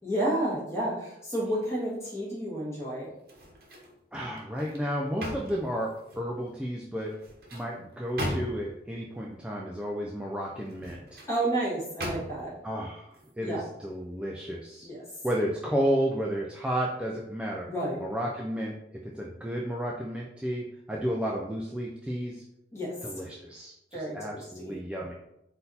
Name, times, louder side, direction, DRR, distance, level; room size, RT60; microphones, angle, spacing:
voice 1, 0.0-3.1 11.3-12.5 13.4-13.7 14.8-15.0 17.6-18.0 22.7-22.9 23.9-24.8, right 1 dB, 15° left, -6 dB, 1.4 m, -31 dB
sound 1, 3.2-4.0 4.4-6.3 7.1-8.8 10.6-11.3 12.0-12.6 13.1-13.3, equal, 55° right, 0.9 m, -38 dB
voice 2, 4.1-7.2 7.5-11.2 12.6-13.1 13.4-14.9 15.2-17.7 18.0-22.4 23.0-25.1, equal, 5° right, -3 dB, 0.3 m, -32 dB
3.9 x 2.7 x 4.0 m, 0.82 s
head